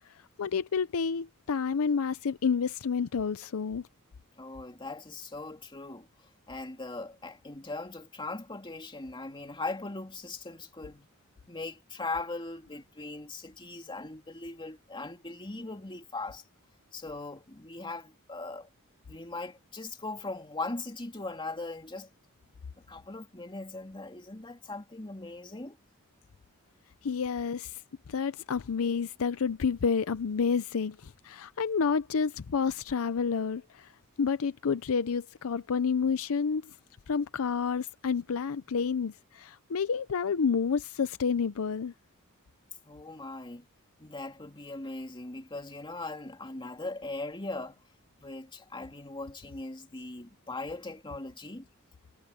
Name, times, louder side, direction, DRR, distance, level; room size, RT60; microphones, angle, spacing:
voice 1, 0.4-3.9 27.0-27.8 28.1-33.9 34.2-36.6 37.1-41.9, left 6 dB, 65° left, 0.5 m, -29 dB
voice 2, 4.4-6.1 6.5-11.1 11.5-16.4 16.9-18.7 19.1-22.1 22.8-25.8 42.8-43.7 44.0-47.8 48.2-51.7, left 2 dB, 20° left, 2.5 m, -39 dB
head